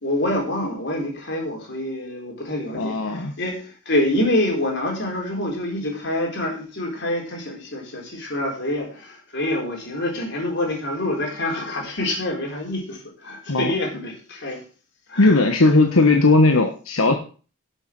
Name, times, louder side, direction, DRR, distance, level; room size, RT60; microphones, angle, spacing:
voice 1, 0.0-14.6 15.1-15.4, left 1 dB, 55° left, 1 dB, 4.2 m, -26 dB
voice 2, 2.7-3.3 13.5-13.7 15.2-17.1, left 2 dB, 85° left, 4 dB, 1.3 m, -17 dB
11.5 x 7.1 x 6.0 m, 0.38 s
head